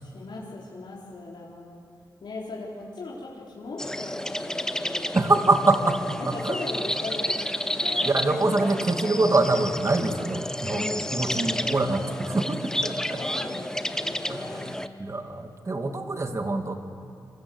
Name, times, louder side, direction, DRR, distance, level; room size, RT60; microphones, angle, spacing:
voice 1, 0.0-1.8 2.2-5.1 6.2-8.7 9.0-9.2 10.7-11.7 13.1-14.7 15.8-16.1, left 2 dB, 80° left, -5 dB, 4.3 m, -38 dB
sound 1, 3.8-14.9, left 1 dB, 5° left, 1.0 m, -31 dB
voice 2, 5.1-6.6 8.0-10.8 11.1-13.2 14.3-14.7 15.0-16.7, right 2 dB, 40° right, 5 dB, 2.3 m, -25 dB
28.0 x 25.5 x 8.1 m, 2.5 s
wide cardioid pair, 95°, 8 cm